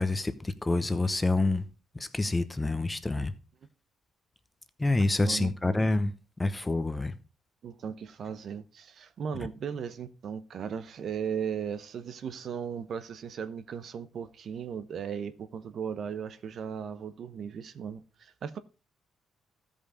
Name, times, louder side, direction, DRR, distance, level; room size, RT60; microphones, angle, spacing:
voice 1, 0.0-1.6 1.9-3.3 4.8-6.1 6.4-7.1, left 2 dB, 15° left, 0.9 m, -27 dB
voice 2, 7.6-18.6, right 7 dB, 60° right, 0.8 m, -37 dB
13.5 x 5.4 x 4.9 m
cardioid pair, 90°, 0 cm